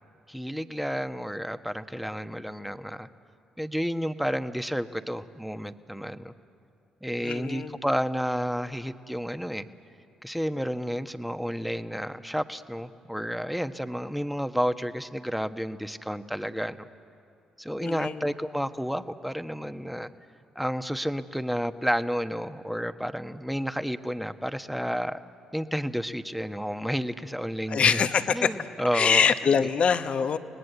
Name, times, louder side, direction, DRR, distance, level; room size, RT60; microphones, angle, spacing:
voice 1, 0.3-3.1 3.6-6.3 7.0-9.7 10.2-16.9 17.6-20.1 20.5-25.2 25.5-28.0 28.3-29.7, equal, ahead, 9 dB, 1.2 m, -31 dB
voice 2, 7.2-7.8 17.8-18.2 27.7-28.5 28.9-30.4, left 6 dB, 55° left, 10 dB, 1.1 m, -24 dB
29.5 x 19.5 x 8.1 m, 2.5 s
hypercardioid pair, 40°, 2 cm